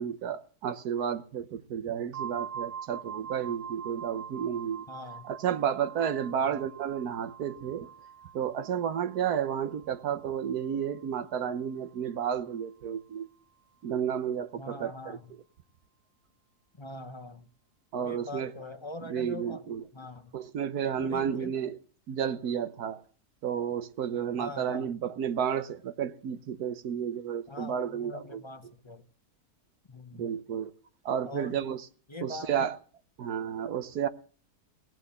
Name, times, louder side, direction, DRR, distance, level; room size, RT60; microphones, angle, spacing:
voice 1, 0.0-4.8 5.2-7.9 8.3-13.3 13.8-15.2 17.9-18.5 19.0-19.8 20.3-21.8 22.1-23.0 23.4-28.4 30.1-30.7 31.0-31.8 32.2-32.8 33.2-34.1, right 8 dB, 75° right, 1.4 m, -32 dB
sound 1, 2.1-11.8, right 8 dB, 55° right, 1.1 m, -44 dB
voice 2, 4.9-5.3 6.3-6.6 14.6-15.3 16.8-17.5 18.0-19.7 19.9-20.3 21.0-21.5 24.4-24.9 27.5-29.0 29.9-30.3 31.2-31.6 32.1-32.7, left 2 dB, 20° left, 0.8 m, -43 dB
18.0 x 9.0 x 7.0 m
omnidirectional pair, 1.7 m